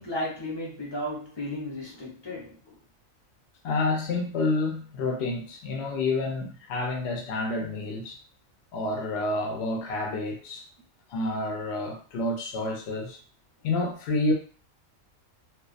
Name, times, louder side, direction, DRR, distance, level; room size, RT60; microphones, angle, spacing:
voice 1, 0.0-2.8, left 1 dB, 30° left, -4 dB, 0.6 m, -34 dB
voice 2, 3.6-8.2 8.7-10.6 11.1-13.2 13.6-14.3, left 2 dB, 65° left, 2 dB, 0.8 m, -29 dB
2.3 x 2.2 x 2.4 m, 0.39 s
omnidirectional pair, 1.4 m